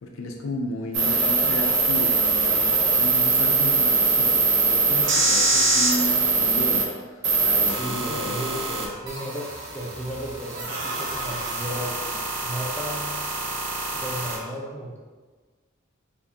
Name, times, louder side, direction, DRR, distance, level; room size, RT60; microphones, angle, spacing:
voice 1, 0.0-8.9, left 1 dB, 70° left, 3 dB, 0.4 m, -33 dB
sound 1, 0.9-6.8 7.2-14.4, right 3 dB, 60° right, 0.7 m, -23 dB
voice 2, 7.7-9.4 9.7-13.5 13.9-15.0, equal, 10° left, -4 dB, 0.5 m, -35 dB
4.6 x 2.6 x 2.7 m, 1.4 s
head